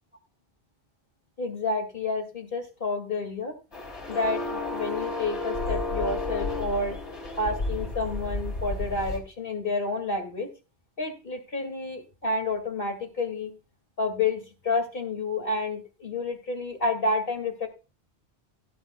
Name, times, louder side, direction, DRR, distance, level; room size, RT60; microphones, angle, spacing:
voice 1, 1.4-3.5 4.1-7.0 7.4-10.5 11.0-13.5 14.0-17.7, left 3 dB, 55° left, 5 dB, 2.4 m, -29 dB
sound 1, 3.7-9.2, left 2 dB, 90° left, 3.2 m, -32 dB
16.5 x 11.0 x 2.3 m, 0.32 s
omnidirectional pair, 1.1 m